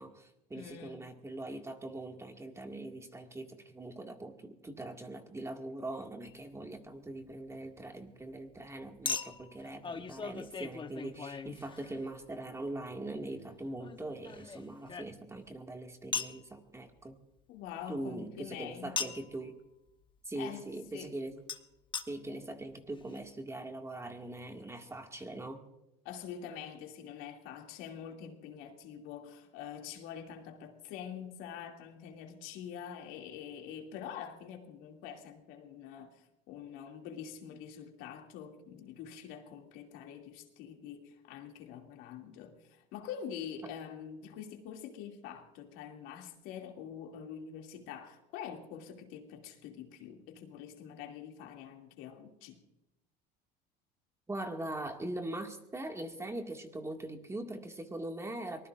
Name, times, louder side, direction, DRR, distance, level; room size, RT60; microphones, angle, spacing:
voice 1, 0.0-17.2 17.9-19.6 20.3-21.4 22.1-25.6 54.3-58.7, right 1 dB, 15° right, 2.1 m, -42 dB
voice 2, 0.5-1.1 17.5-19.1 20.4-20.7 20.9-21.2 26.0-52.6, left 8 dB, 80° left, 2.6 m, -45 dB
Chink clink, 6.2-6.4 9.1-12.2 13.8-15.5 16.1-16.4 19.0-19.3 21.5-21.6 21.9-22.1 22.7-22.8 23.0-23.1, left 5 dB, 25° left, 1.1 m, -39 dB
24.0 x 19.5 x 2.6 m
supercardioid pair, 110°, 21 cm